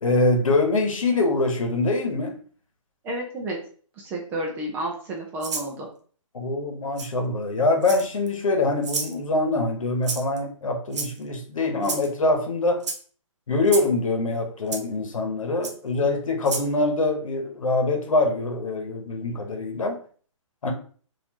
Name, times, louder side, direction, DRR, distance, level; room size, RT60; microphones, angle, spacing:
voice 1, 0.0-2.4 6.3-12.9 13.5-20.0 20.6-20.7, left 2 dB, 85° left, 4 dB, 1.1 m, -24 dB
voice 2, 3.0-3.6 4.0-5.9, right 1 dB, 10° right, -1 dB, 0.5 m, -31 dB
Rattle (instrument), 5.4-5.7 7.0-7.1 7.8-8.3 8.8-9.1 10.0-10.4 10.9-11.3 11.8-12.1 12.8-13.0 13.7-13.9 14.7-14.8 15.6-15.7 16.4-16.7, right 4 dB, 60° right, 1.0 m, -30 dB
4.1 x 2.6 x 2.9 m, 0.44 s
hypercardioid pair, 160°, 17 cm